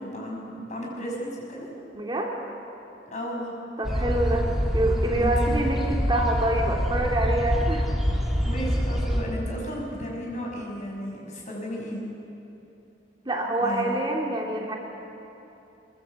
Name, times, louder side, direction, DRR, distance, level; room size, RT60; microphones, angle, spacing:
voice 1, 0.0-1.7 3.1-3.5 5.2-5.5 8.4-12.0 13.6-14.0, equal, 40° left, -1 dB, 6.3 m, -34 dB
voice 2, 1.9-2.3 3.8-4.5 4.7-7.9 13.3-14.8, right 1 dB, 25° right, 0 dB, 2.3 m, -26 dB
sound 1, 3.8-9.2, equal, ahead, 2.8 m, -25 dB
23.0 x 23.0 x 8.0 m, 2.9 s
head